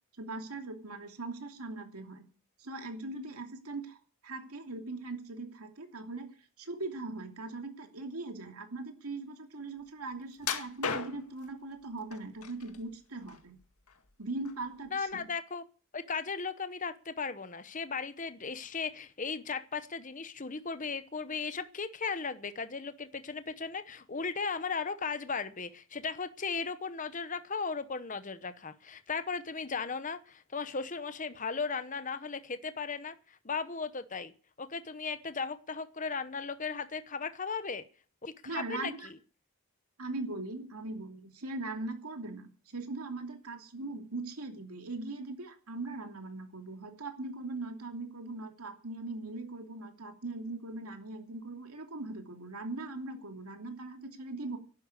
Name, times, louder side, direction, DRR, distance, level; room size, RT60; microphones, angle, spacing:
voice 1, 0.2-2.2 2.6-4.0 4.2-6.3 6.6-13.6 14.2-15.3 38.4-39.1 40.0-54.6, right 2 dB, 85° right, 5 dB, 2.8 m, -40 dB
sound 1, 10.4-11.4 12.1-12.8 13.2-14.1 14.5-14.6 15.2-15.3, left 6 dB, 85° left, 2.0 m, -36 dB
voice 2, 14.9-15.6 15.9-34.3 34.6-37.8 38.2-39.2, left 5 dB, 35° left, 12 dB, 0.9 m, -36 dB
11.5 x 9.8 x 9.7 m, 0.39 s
head